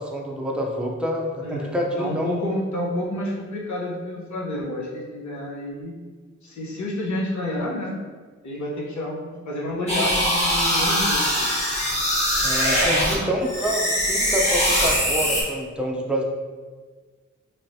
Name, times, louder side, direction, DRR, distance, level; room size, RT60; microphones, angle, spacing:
voice 1, 0.0-2.3 12.4-16.2, equal, 5° right, -2 dB, 0.5 m, -27 dB
voice 2, 2.0-5.9 6.4-8.0 8.4-11.6, left 1 dB, 75° left, -3 dB, 0.8 m, -29 dB
sound 1, 9.9-13.1 13.5-15.4, equal, 20° left, 1.1 m, -22 dB
3.1 x 3.0 x 2.7 m, 1.5 s
cardioid pair, 65°, 29 cm